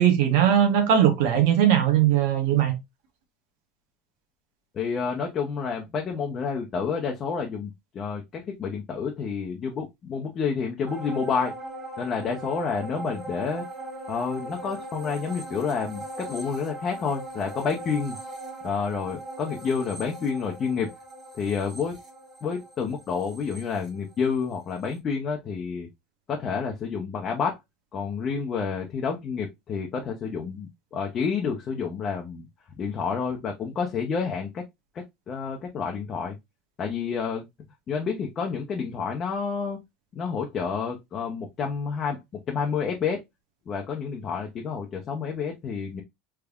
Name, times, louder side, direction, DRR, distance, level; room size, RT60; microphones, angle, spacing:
voice 1, 0.0-2.7, right 10 dB, 80° right, 0.9 m, -20 dB
voice 2, 4.7-11.5 12.0-13.7 14.1-18.2 18.6-20.9 21.3-22.0 22.4-25.9 26.3-27.6 27.9-32.5 32.8-34.6 34.9-36.4 36.8-37.4 37.9-39.8 40.1-42.2 42.5-43.2 43.7-46.0, left 5 dB, 35° left, 0.7 m, -29 dB
sound 1, 10.9-24.5 24.9-25.0, right 1 dB, 20° right, 1.9 m, -39 dB
3.5 x 3.2 x 2.3 m
supercardioid pair, 115°, 0 cm